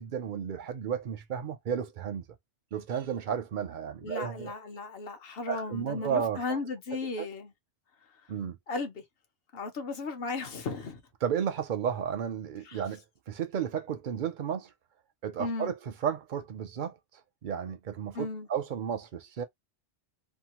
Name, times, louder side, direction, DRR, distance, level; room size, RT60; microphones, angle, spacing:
voice 1, 0.0-2.2 2.7-4.5 5.5-6.6 7.2-7.3 8.3-8.6 11.2-14.7 15.2-17.0 17.4-19.4, right 8 dB, 60° right, 0.5 m, -33 dB
voice 2, 4.0-7.5 8.7-9.0 9.5-11.0 12.6-12.8 15.4-15.7 18.1-18.5, left 3 dB, 60° left, 1.0 m, -35 dB
2.9 x 2.2 x 2.8 m
omnidirectional pair, 1.2 m